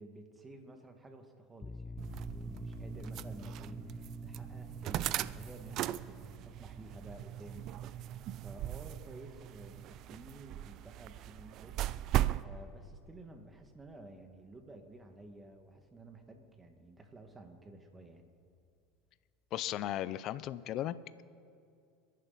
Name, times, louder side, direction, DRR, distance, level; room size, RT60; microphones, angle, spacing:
voice 1, 0.0-11.8 12.4-18.3, right 2 dB, 20° right, 5 dB, 2.0 m, -52 dB
sound 1, 1.6-12.9, left 2 dB, 10° left, 0.6 m, -50 dB
sound 2, 2.0-12.5, right 13 dB, 55° right, 0.4 m, -38 dB
voice 2, 19.5-21.2, left 12 dB, 50° left, 16 dB, 0.5 m, -36 dB
28.0 x 11.0 x 4.2 m, 2.4 s
supercardioid pair, 100°, 0 cm